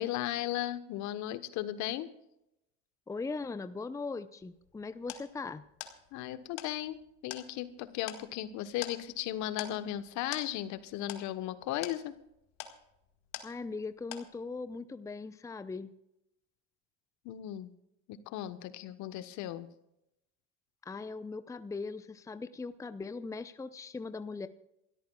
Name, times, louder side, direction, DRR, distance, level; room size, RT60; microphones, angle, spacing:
voice 1, 0.0-2.1 6.1-7.0 7.2-12.1 17.2-17.7 18.1-19.7, left 13 dB, 55° left, 12 dB, 1.2 m, -36 dB
voice 2, 3.1-5.6 13.4-15.9 20.9-24.5, left 4 dB, 10° left, 12 dB, 0.7 m, -39 dB
sound 1, 4.4-13.9 14.1-14.7, left 12 dB, 75° left, 1.8 m, -46 dB
28.0 x 13.5 x 2.3 m, 0.83 s
hypercardioid pair, 75°, 34 cm